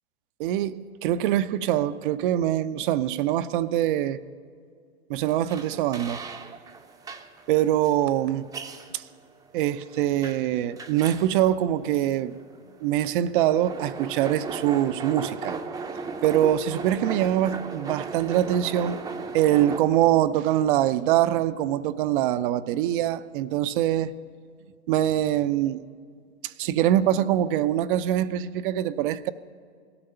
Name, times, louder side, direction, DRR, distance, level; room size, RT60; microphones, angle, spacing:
voice 1, 0.4-4.2 5.1-6.2 7.5-8.5 8.9-9.0 9.5-12.4 12.8-15.6 16.2-19.0 19.3-24.1 24.9-25.8 26.4-29.3, right 12 dB, 45° right, 0.6 m, -24 dB
sound 1, 5.5-19.8, right 4 dB, 10° right, 0.7 m, -37 dB
18.5 x 13.0 x 5.6 m
hypercardioid pair, 115°, 35 cm